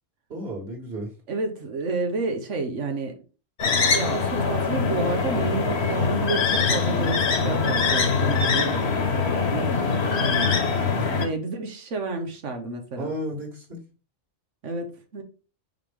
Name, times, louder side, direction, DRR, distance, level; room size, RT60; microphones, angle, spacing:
voice 1, 0.3-1.1 10.9-11.2 13.0-13.8, equal, 55° right, -8 dB, 2.6 m, -33 dB
voice 2, 1.3-3.2 3.9-13.1 14.6-14.9 15.1-15.2, right 3 dB, 85° right, 5 dB, 1.5 m, -30 dB
sound 1, 3.6-11.3, left 5 dB, 65° left, 1.4 m, -23 dB
5.7 x 5.1 x 3.7 m, 0.34 s
omnidirectional pair, 1.2 m